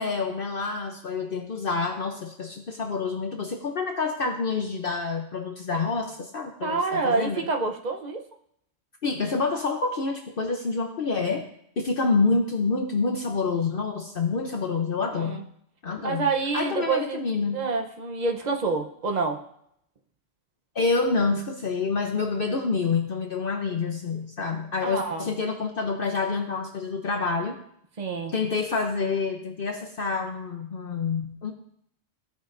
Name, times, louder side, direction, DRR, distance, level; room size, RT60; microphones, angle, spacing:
voice 1, 0.0-7.5 9.0-11.5 11.8-15.4 15.8-16.3 16.5-17.6 20.7-27.6 28.3-31.5, left 4 dB, 50° left, 2 dB, 0.9 m, -27 dB
voice 2, 6.6-8.2 15.1-15.4 16.0-17.2 17.5-19.4 24.8-25.3 28.0-28.3, right 4 dB, 40° right, 3 dB, 0.9 m, -27 dB
15.0 x 5.2 x 2.6 m, 0.71 s
omnidirectional pair, 1.3 m